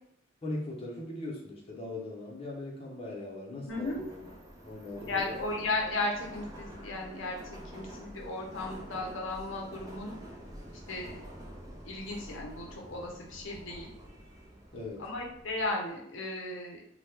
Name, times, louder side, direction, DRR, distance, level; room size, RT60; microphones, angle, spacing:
voice 1, 0.4-4.3 4.6-5.4 14.7-15.1, left 2 dB, 30° left, -2 dB, 0.6 m, -39 dB
voice 2, 3.7-4.0 5.1-10.2 10.9-11.2 11.8-13.9 15.0-16.8, left 2 dB, 75° left, 0 dB, 0.6 m, -35 dB
Subway metro underground, 3.7-15.7, equal, 15° right, 0.5 m, -48 dB
2.9 x 2.1 x 3.3 m, 0.73 s
head